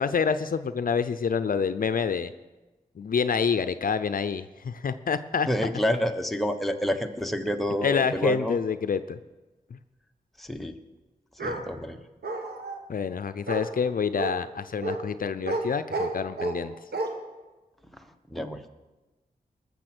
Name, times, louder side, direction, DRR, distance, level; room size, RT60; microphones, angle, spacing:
voice 1, 0.0-2.3 3.0-5.5 7.8-9.2 9.7-9.8 12.9-16.7, left 6 dB, 60° left, 12 dB, 0.5 m, -27 dB
voice 2, 5.5-8.6 10.4-10.8 11.4-12.0 17.9-18.0 18.3-18.6, equal, ahead, 5 dB, 1.1 m, -28 dB
Bark, 11.4-11.6 12.2-12.8 13.5-13.7 14.2-14.3 14.8-15.0 15.4-15.6 15.9-16.6 16.9-17.1, right 2 dB, 85° right, 1.5 m, -30 dB
20.0 x 7.0 x 6.1 m, 1.1 s
wide cardioid pair, 75°, 16 cm